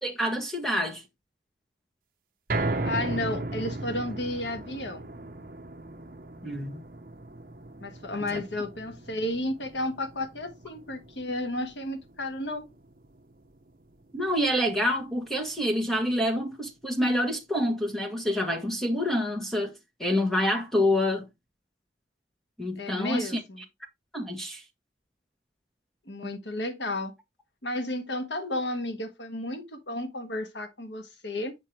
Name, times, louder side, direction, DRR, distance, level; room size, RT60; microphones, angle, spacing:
voice 1, 0.0-1.0 6.4-6.8 8.3-8.4 14.1-21.3 22.6-23.4 24.1-24.6, left 1 dB, ahead, 1.3 m, -27 dB
sound 1, 2.5-14.7 15.1-15.2 15.7-15.8, right 2 dB, 50° right, 0.9 m, -37 dB
voice 2, 2.8-5.1 7.8-12.7 22.8-23.6 26.1-27.1 27.6-31.5, left 1 dB, 80° left, 1.4 m, -32 dB
7.4 x 5.4 x 3.2 m
head